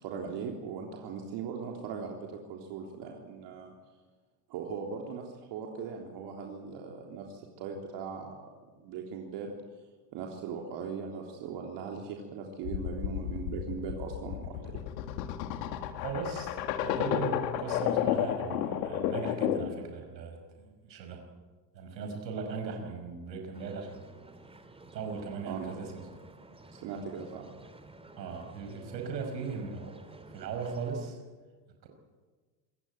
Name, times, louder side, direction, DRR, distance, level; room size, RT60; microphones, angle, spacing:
voice 1, 0.0-3.7 4.5-8.3 8.8-9.5 10.1-14.8 25.5-25.7 26.7-27.5, right 6 dB, 55° right, 1 dB, 3.6 m, -39 dB
sound 1, 12.6-19.8, left 10 dB, 75° left, 2.2 m, -32 dB
voice 2, 16.0-21.2 21.7-24.1 24.9-25.9 28.2-30.0 30.3-31.2 31.8-31.9, right 5 dB, 90° right, 4 dB, 5.4 m, -38 dB
sound 2, 23.5-31.1, right 2 dB, 10° right, 3.2 m, -52 dB
27.0 x 15.5 x 9.4 m, 1.4 s
hypercardioid pair, 100°, 49 cm